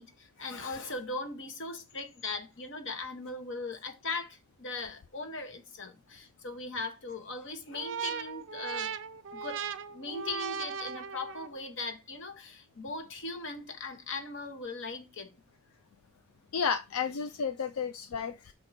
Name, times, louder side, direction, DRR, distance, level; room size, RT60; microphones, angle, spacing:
voice 1, 0.0-8.9 9.3-15.3, left 3 dB, 55° left, 1.2 m, -39 dB
sound 1, 7.7-11.6, right 7 dB, 55° right, 0.5 m, -38 dB
voice 2, 16.5-18.5, left 6 dB, 80° left, 0.4 m, -32 dB
5.6 x 4.4 x 4.1 m
head